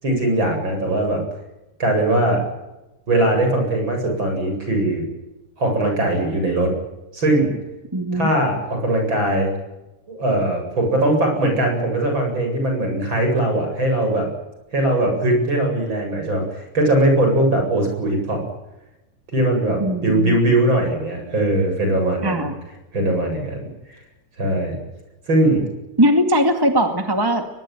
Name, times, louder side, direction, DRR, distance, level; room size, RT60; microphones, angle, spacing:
voice 1, 0.0-1.2 1.8-2.4 3.1-5.0 5.6-6.7 7.1-7.5 8.1-9.5 10.1-14.3 14.7-18.4 19.3-22.5 22.9-23.6 24.4-24.8 25.3-25.6, right 1 dB, 40° right, 3 dB, 8.9 m, -20 dB
voice 2, 7.9-8.3 19.8-20.4 22.2-22.6 26.0-27.5, equal, 10° right, 6 dB, 1.6 m, -19 dB
23.0 x 22.5 x 9.3 m, 0.99 s
omnidirectional pair, 3.4 m